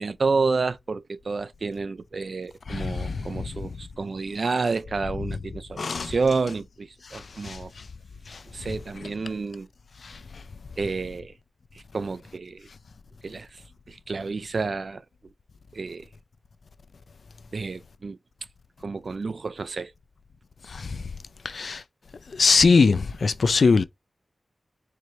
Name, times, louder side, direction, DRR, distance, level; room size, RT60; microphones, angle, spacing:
voice 1, 0.0-7.7 8.5-9.7 10.8-11.3 11.7-12.7 13.2-15.0 15.7-16.1 17.5-18.2 18.8-19.9, right 4 dB, 65° right, 0.3 m, -30 dB
voice 2, 2.7-3.4 5.8-6.1 7.1-7.6 8.3-8.4 10.0-10.2 20.7-21.0 21.4-21.8 22.3-23.8, left 4 dB, 75° left, 0.4 m, -22 dB
4.6 x 2.6 x 3.1 m
wide cardioid pair, 80°, 0 cm